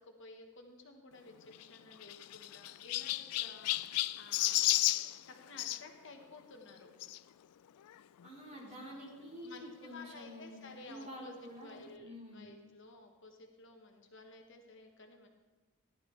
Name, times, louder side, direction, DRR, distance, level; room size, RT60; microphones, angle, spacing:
voice 1, 0.1-4.7 5.1-6.9 9.3-15.3, left 2 dB, 55° left, 3 dB, 1.2 m, -54 dB
Chirp tweet, 1.5-5.8 7.0-7.2 7.9-8.0 8.2-8.3 9.6-9.7, left 16 dB, 90° left, 0.3 m, -33 dB
voice 2, 8.2-10.6 10.8-12.6, equal, 30° right, -5 dB, 3.6 m, -48 dB
15.5 x 11.5 x 3.3 m, 1.2 s
head